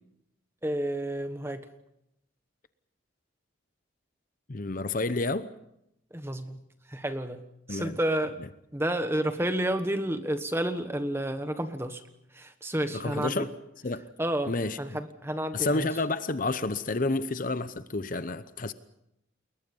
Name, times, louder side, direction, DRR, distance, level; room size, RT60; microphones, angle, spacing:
voice 1, 0.6-1.7 6.1-6.6 6.9-7.4 7.7-8.3 8.7-12.0 12.3-13.5 14.2-15.9, right 1 dB, 10° right, 1.3 m, -30 dB
voice 2, 4.5-5.5 7.7-8.0 12.9-13.5 13.8-14.1 14.5-15.0 15.5-18.7, left 2 dB, 40° left, 0.8 m, -30 dB
29.0 x 21.5 x 5.5 m
head